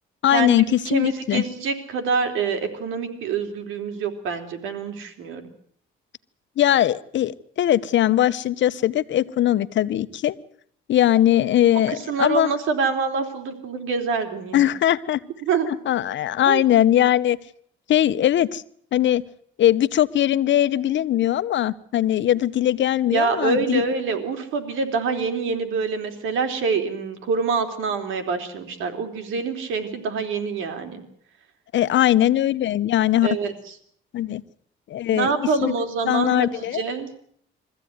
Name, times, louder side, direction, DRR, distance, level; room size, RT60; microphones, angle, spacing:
voice 1, 0.2-1.4 6.6-10.4 10.9-12.5 14.5-15.2 15.6-17.4 17.9-18.6 18.9-19.2 19.6-23.8 31.7-33.3 34.1-34.4 34.9-35.7 36.1-36.8, left 12 dB, 70° left, 14 dB, 1.0 m, -20 dB
voice 2, 0.8-5.5 11.9-14.7 15.4-15.7 16.5-16.6 23.1-31.0 33.2-33.5 35.1-36.5 36.7-37.1, right 5 dB, 85° right, 7 dB, 3.4 m, -26 dB
23.0 x 15.0 x 9.5 m, 0.64 s
cardioid pair, 90°, 20 cm